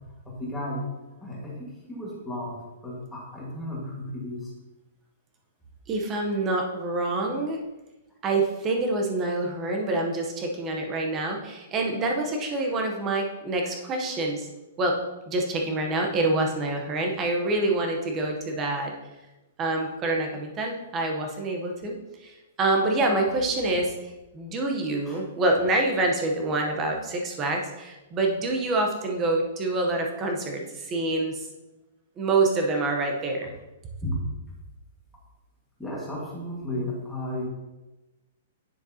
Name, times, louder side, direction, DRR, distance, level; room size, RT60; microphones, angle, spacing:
voice 1, 0.2-0.8 1.2-4.5 25.1-25.2 34.0-34.2 35.8-37.5, left 1 dB, 5° left, -6 dB, 1.6 m, -34 dB
voice 2, 5.9-7.6 8.2-14.5 14.8-14.9 15.3-18.9 19.6-31.4 32.2-33.5, right 2 dB, 15° right, 2 dB, 0.8 m, -26 dB
9.9 x 6.5 x 2.8 m, 1.1 s
hypercardioid pair, 180°, 0 cm